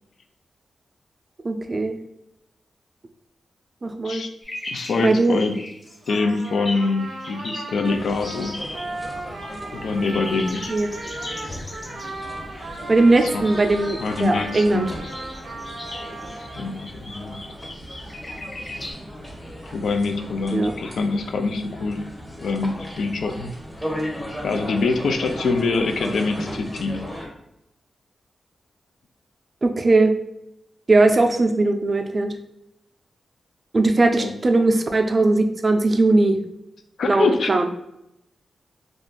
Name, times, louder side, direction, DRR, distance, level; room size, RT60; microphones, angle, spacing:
voice 1, 1.4-2.0 3.8-4.2 5.0-5.4 10.7-11.1 12.9-14.9 20.5-20.7 29.6-30.1 30.9-32.3 33.7-36.4 37.0-37.7, right 2 dB, 40° right, 6 dB, 0.4 m, -19 dB
sound 1, 4.4-7.8 8.2-9.6 9.8-18.9, left 1 dB, 30° left, 0.6 m, -38 dB
voice 2, 4.7-5.6 6.1-8.6 9.7-10.8 13.2-13.5 14.0-14.9 16.4-17.4 19.7-22.0 22.4-23.5 24.4-27.0 34.2-34.3 37.0-37.5, left 3 dB, 80° left, 5 dB, 0.4 m, -24 dB
Trumpet, 5.9-16.8, right 2 dB, 80° right, 0.7 m, -36 dB
sound 2, 7.8-27.3, equal, 10° left, 0.9 m, -37 dB
2.4 x 2.4 x 3.6 m, 0.83 s
cardioid pair, 80°, 0 cm